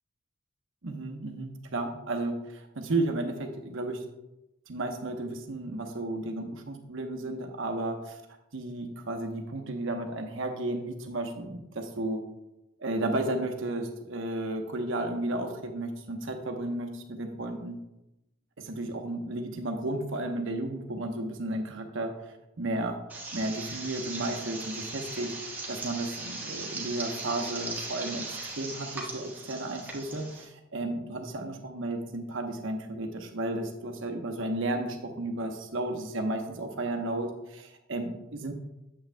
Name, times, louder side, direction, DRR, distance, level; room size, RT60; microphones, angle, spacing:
voice 1, 0.8-4.0 4.7-8.2 8.5-12.2 12.8-17.8 18.6-22.1 22.6-23.0 23.3-25.3 25.7-38.5, right 2 dB, 70° right, 4 dB, 0.9 m, -33 dB
sound 1, 23.1-30.4, right 2 dB, 10° right, 1.3 m, -38 dB
8.6 x 7.8 x 2.2 m, 0.91 s
head